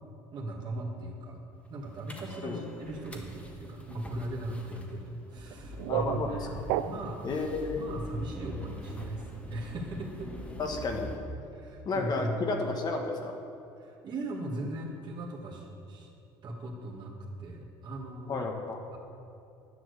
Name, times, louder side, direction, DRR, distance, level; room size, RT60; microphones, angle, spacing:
voice 1, 0.3-1.4 1.7-7.3 7.7-10.5 11.5-12.3 13.8-16.1 16.4-18.4 18.9-19.0, right 1 dB, 45° right, -1 dB, 2.0 m, -38 dB
sound 1, 2.1-11.2, equal, 15° left, 1.4 m, -45 dB
sound 2, 5.4-7.3, right 11 dB, 80° right, 0.4 m, -33 dB
voice 2, 5.9-6.6 7.2-7.8 10.6-11.3 11.8-13.4 18.3-18.8, left 3 dB, 45° left, 3 dB, 1.3 m, -32 dB
10.5 x 6.2 x 6.8 m, 2.6 s
supercardioid pair, 90°, 10 cm